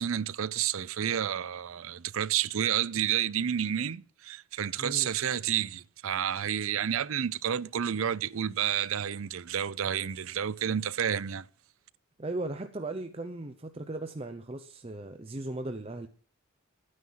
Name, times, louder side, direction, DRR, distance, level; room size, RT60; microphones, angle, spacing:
voice 1, 0.0-11.5, right 9 dB, 75° right, 0.5 m, -30 dB
voice 2, 4.8-5.1 12.2-16.1, right 2 dB, 25° right, 0.6 m, -37 dB
12.5 x 9.7 x 5.7 m
head